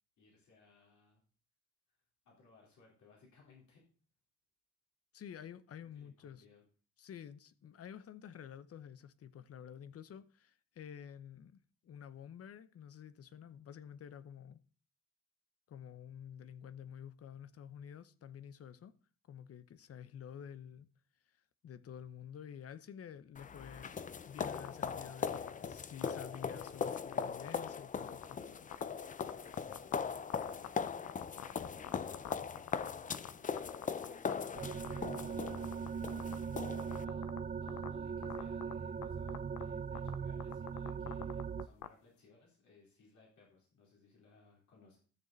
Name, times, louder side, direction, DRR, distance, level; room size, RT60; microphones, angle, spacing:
voice 1, 0.2-1.2 2.3-3.8 5.8-6.6 31.3-33.8 34.1-34.5 34.9-36.1 36.7-45.0, left 3 dB, 70° left, 4.0 m, -64 dB
voice 2, 5.1-6.4 7.0-14.6 15.7-18.9 19.3-20.9 21.6-28.7, left 8 dB, 50° left, 0.8 m, -50 dB
sound 1, 23.4-37.1, left 6 dB, 25° left, 0.5 m, -40 dB
sound 2, 24.4-24.9 25.3-25.5 26.0-27.2 27.5-27.7 28.1-28.3 28.7-28.8 29.2-29.9 30.3-33.3 33.6-34.3 34.6-35.2 35.5-36.3 36.8-37.4 37.7-37.9 38.2-38.7 39.0-39.1 39.3-39.6 39.9-40.1 40.4-41.9, left 15 dB, 90° left, 0.8 m, -44 dB
sound 3, 34.5-41.7, right 6 dB, 25° right, 0.5 m, -40 dB
13.5 x 6.6 x 4.0 m
cardioid pair, 90°, 30 cm